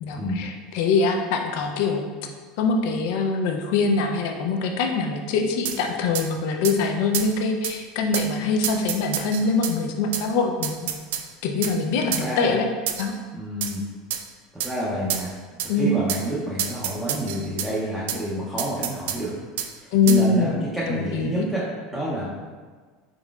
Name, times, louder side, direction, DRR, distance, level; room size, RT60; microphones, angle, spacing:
voice 1, 0.0-2.1 2.6-10.9 11.4-12.7 13.0-13.1 15.7-15.9 19.9-21.5, left 4 dB, 60° left, 3 dB, 0.4 m, -23 dB
sound 1, 5.6-5.8 6.1-6.3 6.6-6.8 7.1-7.3 7.6-7.8 8.1-8.3 8.6-9.8 10.1-10.3 10.6-11.3 11.6-11.8 12.1-12.3 12.9-13.1 13.6-13.8 14.1-14.2 14.6-14.7 15.1-15.3 15.6-15.7 16.1-16.2 16.6-17.7 18.1-18.2 18.6-19.2 19.6-19.7 20.1-20.2, right 10 dB, 90° right, 0.3 m, -28 dB
voice 2, 12.2-12.5 13.3-13.8 14.6-15.3 15.8-19.3 19.8-21.6 21.9-22.3, right 1 dB, ahead, -8 dB, 0.6 m, -28 dB
4.1 x 3.8 x 2.4 m, 1.5 s
cardioid pair, 170°, 0 cm